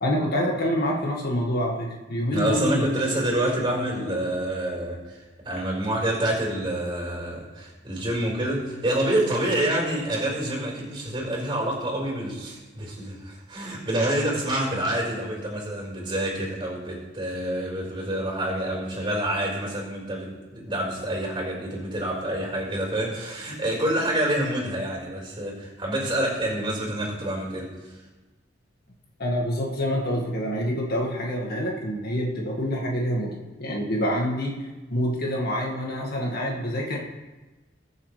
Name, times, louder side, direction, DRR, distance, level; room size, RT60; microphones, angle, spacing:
voice 1, 0.0-2.9 29.2-34.6 34.9-37.0, equal, 55° left, -2 dB, 1.9 m, -26 dB
voice 2, 2.3-28.0, right 1 dB, 25° right, -3 dB, 4.6 m, -27 dB
22.0 x 7.5 x 3.3 m, 1.2 s
head